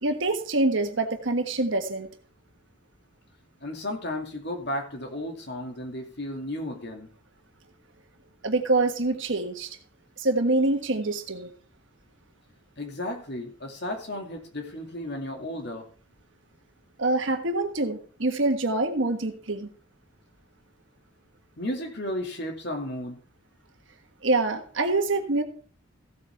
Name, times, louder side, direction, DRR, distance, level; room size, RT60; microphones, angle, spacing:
voice 1, 0.0-2.1 8.4-9.8 10.2-11.5 17.0-19.7 24.2-25.4, right 2 dB, 65° right, 6 dB, 1.5 m, -25 dB
voice 2, 3.6-7.1 12.8-15.8 21.6-23.2, left 1 dB, 55° left, 3 dB, 2.3 m, -34 dB
15.5 x 8.3 x 3.5 m, 0.42 s
head